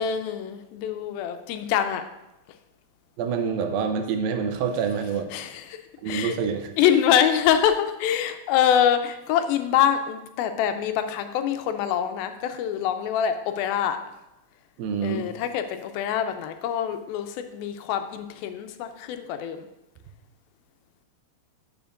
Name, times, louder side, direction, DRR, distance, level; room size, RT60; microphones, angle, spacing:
voice 1, 0.0-2.0 5.3-5.8 6.1-6.3 6.8-14.0 15.0-19.7, left 9 dB, 90° left, 8 dB, 2.5 m, -25 dB
voice 2, 3.2-5.3 6.0-6.7 14.8-15.3, right 6 dB, 85° right, 5 dB, 2.5 m, -26 dB
12.0 x 7.1 x 2.5 m, 0.94 s
omnidirectional pair, 4.1 m